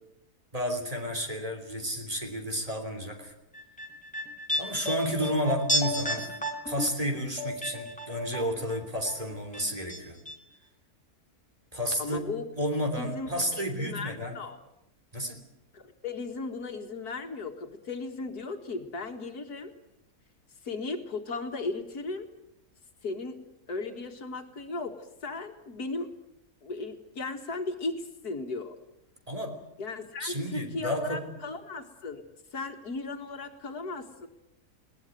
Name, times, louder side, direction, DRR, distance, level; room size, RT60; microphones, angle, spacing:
voice 1, 0.5-3.3 4.6-6.3 6.6-10.2 11.7-12.2 12.6-14.4 15.1-15.4 29.3-29.6 30.2-31.3, equal, 20° right, 4 dB, 3.2 m, -31 dB
sound 1, 3.5-8.8 9.0-10.0 10.2-10.3, equal, 5° left, 2.6 m, -32 dB
voice 2, 12.0-12.4 13.0-14.6 15.7-19.7 20.6-22.3 23.0-23.4 23.7-26.1 26.6-28.7 29.8-32.2 32.5-34.3, left 3 dB, 75° left, 6 dB, 2.4 m, -36 dB
21.5 x 18.5 x 9.3 m, 0.84 s
omnidirectional pair, 1.7 m